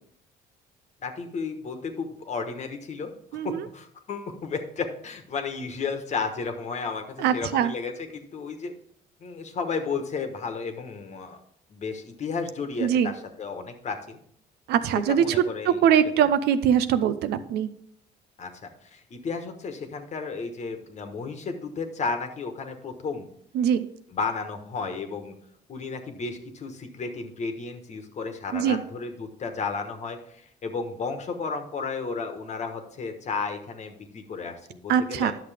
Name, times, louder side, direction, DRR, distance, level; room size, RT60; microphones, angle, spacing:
voice 1, 1.0-3.1 3.4-8.7 9.2-11.4 11.7-14.2 15.1-15.8 16.2-16.3 18.4-23.3 24.1-25.3 25.7-35.3, left 4 dB, 45° left, 6 dB, 1.3 m, -33 dB
voice 2, 3.3-3.6 7.2-7.7 12.8-13.1 14.7-15.2 15.7-17.7 23.5-23.8 28.5-28.8 34.9-35.3, right 9 dB, 75° right, 12 dB, 0.6 m, -22 dB
10.0 x 6.6 x 3.5 m, 0.67 s
cardioid pair, 110°, 17 cm